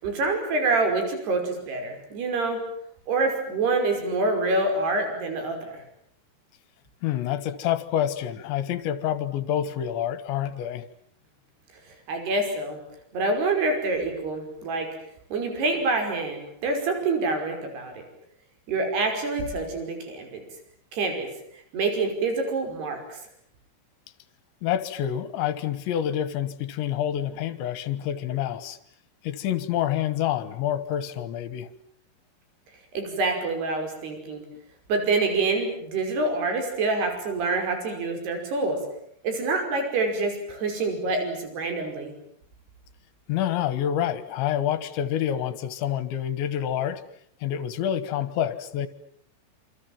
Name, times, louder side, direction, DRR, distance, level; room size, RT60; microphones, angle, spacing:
voice 1, 0.0-2.6 3.1-5.8 12.1-12.8 13.1-14.9 15.3-18.0 18.7-20.4 20.9-21.3 21.7-23.2 32.9-34.4 34.9-38.8 39.2-42.1, right 3 dB, 55° right, 5 dB, 7.2 m, -26 dB
voice 2, 7.0-10.9 24.6-28.8 29.2-31.7 43.3-47.0 47.4-48.9, left 10 dB, 75° left, 14 dB, 3.6 m, -27 dB
28.0 x 26.5 x 7.4 m, 0.66 s
omnidirectional pair, 5.6 m